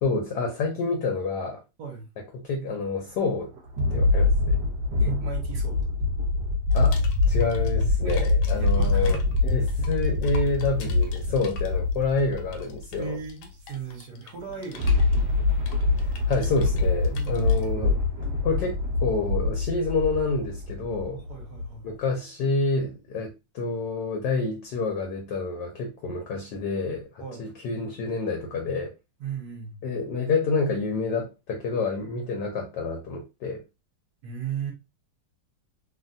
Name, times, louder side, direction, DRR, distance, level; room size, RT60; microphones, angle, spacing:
voice 1, 0.0-1.6 2.4-3.5 3.9-4.6 6.7-13.2 16.3-18.0 18.4-21.2 21.8-27.1 27.4-28.9 29.8-33.6, left 3 dB, 70° left, 1.1 m, -28 dB
sound 1, 2.8-2.9 3.4-13.1 14.4-21.7, left 3 dB, 45° right, 1.3 m, -24 dB
voice 2, 5.0-5.9 8.0-8.2 8.5-9.3 13.0-15.1 17.1-17.3 21.1-21.9 27.2-27.5 29.2-29.8 34.2-34.7, right 6 dB, 60° right, 1.1 m, -37 dB
sound 2, 6.7-17.7, left 5 dB, 85° left, 1.5 m, -47 dB
3.3 x 2.2 x 2.5 m
omnidirectional pair, 2.3 m